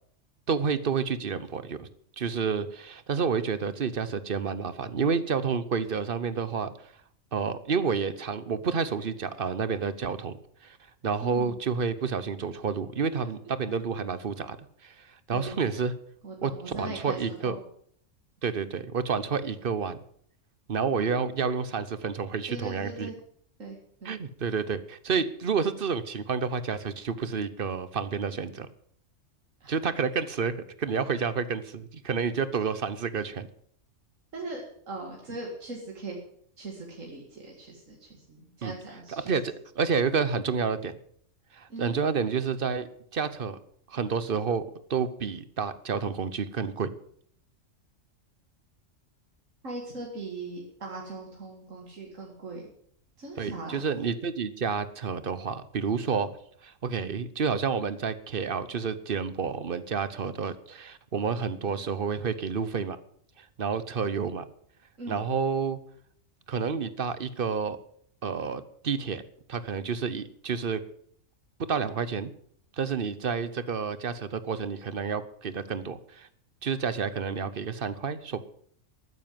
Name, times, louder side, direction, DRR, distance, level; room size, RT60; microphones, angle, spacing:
voice 1, 0.5-1.9 2.2-6.9 7.3-10.8 11.0-14.6 14.8-15.9 16.4-16.5 16.8-17.5 18.4-20.0 20.7-23.1 24.0-28.7 29.7-33.5 38.6-38.7 39.1-41.0 41.5-43.6 43.9-46.9 53.4-56.3 56.6-63.0 63.4-64.4 65.1-65.8 66.5-67.8 68.2-69.2 69.5-70.8 71.7-72.3 72.8-76.3 76.6-78.4, right 6 dB, 50° right, 14 dB, 1.0 m, -29 dB
voice 2, 11.2-11.6 15.3-15.6 16.2-17.6 20.9-21.2 22.5-23.1 23.6-24.1 29.6-29.9 34.3-36.2 36.6-39.3 41.7-42.0 49.6-52.6 53.2-53.8 65.0-65.3, right 2 dB, 80° right, -1 dB, 2.6 m, -40 dB
13.0 x 9.6 x 7.5 m, 0.64 s
omnidirectional pair, 1.3 m